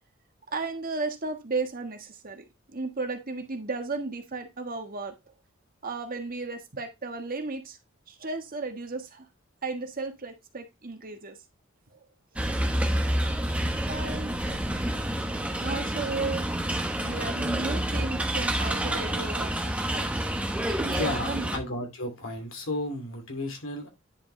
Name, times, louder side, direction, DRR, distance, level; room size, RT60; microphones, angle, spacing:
voice 1, 0.5-5.1 5.8-7.8 8.1-9.3 9.6-11.4 11.9-12.0 12.3-12.4 13.9-14.3 15.5-16.5 17.0-20.2 20.7-21.5, right 3 dB, 45° right, 1.4 m, -34 dB
sound 1, 12.4-21.6, right 1 dB, 5° right, 1.0 m, -28 dB
voice 2, 20.9-23.9, left 1 dB, 70° left, 2.6 m, -33 dB
10.0 x 5.2 x 3.2 m
head